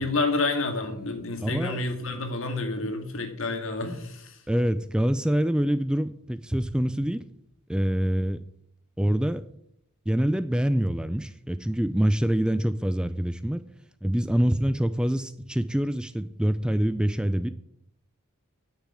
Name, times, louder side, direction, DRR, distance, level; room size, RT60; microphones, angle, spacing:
voice 1, 0.0-4.4, left 3 dB, 65° left, 2.2 m, -29 dB
voice 2, 1.4-1.8 4.5-7.2 7.7-8.4 9.0-9.5 10.1-13.7 14.0-17.5, equal, 5° right, 0.3 m, -25 dB
9.9 x 6.5 x 7.6 m
head